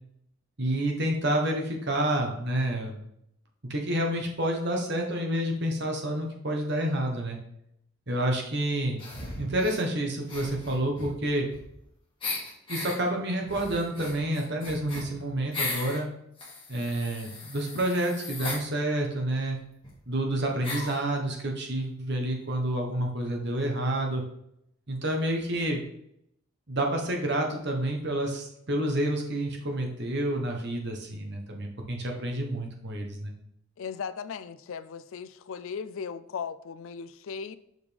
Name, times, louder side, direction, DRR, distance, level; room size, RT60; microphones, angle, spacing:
voice 1, 0.6-3.0 3.7-7.4 8.1-9.0 9.4-11.5 12.7-16.1 16.7-19.6 20.1-24.2 24.9-25.8 26.7-33.3, right 1 dB, 50° right, 1 dB, 1.2 m, -29 dB
sound 1, 9.0-9.8 10.2-11.9 12.2-13.0 13.4-16.0 16.4-18.6 19.5-19.6 19.8-19.9 20.6-21.0, left 3 dB, 25° left, 1.8 m, -37 dB
voice 2, 33.8-37.5, left 6 dB, 65° left, 14 dB, 0.4 m, -37 dB
6.5 x 5.2 x 3.4 m, 0.76 s
head